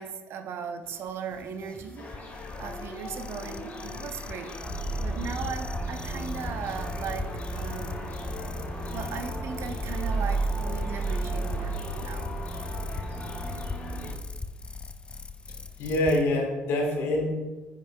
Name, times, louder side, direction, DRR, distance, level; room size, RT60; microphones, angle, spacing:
voice 1, 0.0-8.1 8.9-12.4, right 6 dB, 65° right, 7 dB, 0.6 m, -38 dB
sound 1, 0.8-16.2, left 4 dB, 25° left, 0.4 m, -40 dB
sound 2, 2.0-14.1, left 2 dB, 40° left, 2.0 m, -42 dB
sound 3, 4.6-14.2, right 2 dB, ahead, 0.9 m, -33 dB
voice 2, 15.8-17.3, left 1 dB, 75° left, 1 dB, 1.5 m, -25 dB
7.2 x 5.8 x 2.3 m, 1.1 s
supercardioid pair, 70°, 5 cm